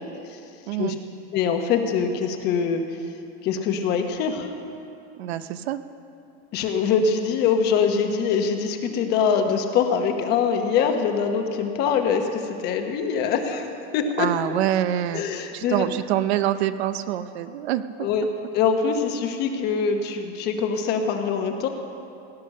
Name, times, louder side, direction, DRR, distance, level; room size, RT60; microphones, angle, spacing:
voice 1, 1.3-2.8 3.4-4.5 6.5-13.7 13.9-14.3 15.1-15.9 18.0-18.3 18.5-21.7, left 6 dB, 30° left, 5 dB, 1.1 m, -23 dB
voice 2, 5.2-5.8 14.2-18.1, right 12 dB, 65° right, 12 dB, 0.7 m, -26 dB
17.5 x 10.0 x 6.5 m, 2.6 s
supercardioid pair, 170°, 34 cm